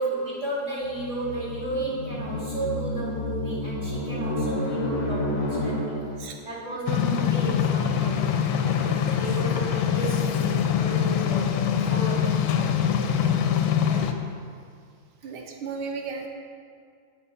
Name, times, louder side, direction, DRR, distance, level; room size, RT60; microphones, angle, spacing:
voice 1, 0.0-5.7 6.2-8.2 9.1-12.8, right 2 dB, 35° right, -8 dB, 2.8 m, -33 dB
sound 1, 0.8-6.4, left 1 dB, 45° left, 1.5 m, -30 dB
sound 2, 6.9-14.1, left 8 dB, 80° left, 1.4 m, -24 dB
voice 2, 8.6-9.0 13.9-14.1 15.2-16.3, right 5 dB, 85° right, 2 dB, 1.8 m, -35 dB
8.9 x 8.5 x 4.3 m, 2.2 s
omnidirectional pair, 2.3 m